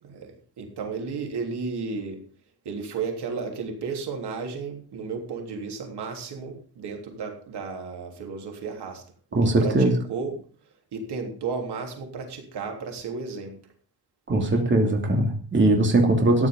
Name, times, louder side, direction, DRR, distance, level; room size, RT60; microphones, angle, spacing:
voice 1, 0.0-2.2 2.7-9.0 9.6-10.4 10.9-13.6, right 4 dB, 85° right, 3 dB, 3.4 m, -33 dB
voice 2, 9.3-9.9 14.3-16.5, right 2 dB, 30° right, 2 dB, 2.7 m, -20 dB
14.0 x 10.5 x 5.2 m, 0.43 s
wide cardioid pair, 165°, 39 cm